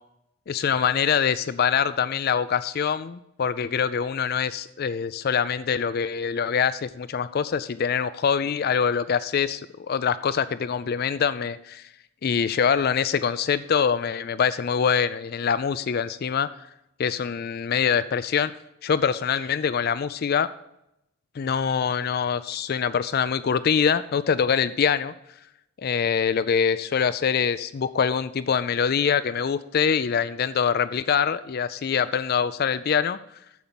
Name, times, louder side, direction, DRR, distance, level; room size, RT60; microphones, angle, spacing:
voice 1, 0.5-9.6 9.9-11.9 12.2-16.5 17.0-18.5 18.8-20.5 21.4-25.1 25.8-33.2, left 7 dB, 45° left, 15 dB, 0.3 m, -24 dB
9.3 x 7.1 x 6.9 m, 0.85 s
head